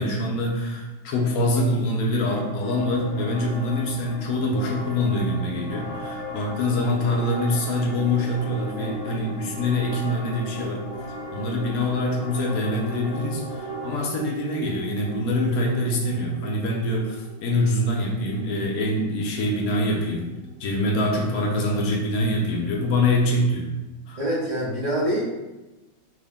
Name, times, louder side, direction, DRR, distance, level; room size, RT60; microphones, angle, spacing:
voice 1, 0.0-10.8 11.3-20.3 20.6-23.7 24.1-24.2, left 1 dB, 60° left, -1 dB, 1.0 m, -24 dB
sound 1, 2.6-14.0, left 2 dB, 90° left, 1.3 m, -37 dB
sound 2, 6.7-21.5, right 4 dB, 30° right, 1.0 m, -42 dB
voice 2, 24.2-25.2, equal, 65° right, -9 dB, 0.4 m, -25 dB
3.5 x 2.6 x 3.5 m, 1.0 s
omnidirectional pair, 2.0 m